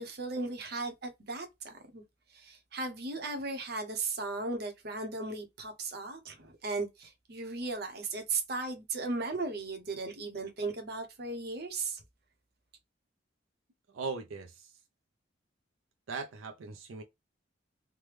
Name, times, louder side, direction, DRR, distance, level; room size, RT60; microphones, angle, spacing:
voice 1, 0.0-2.0 2.3-12.0, right 3 dB, 55° right, 0.8 m, -36 dB
voice 2, 13.9-14.7 16.1-17.0, right 4 dB, 90° right, 0.5 m, -39 dB
3.3 x 2.1 x 3.0 m
head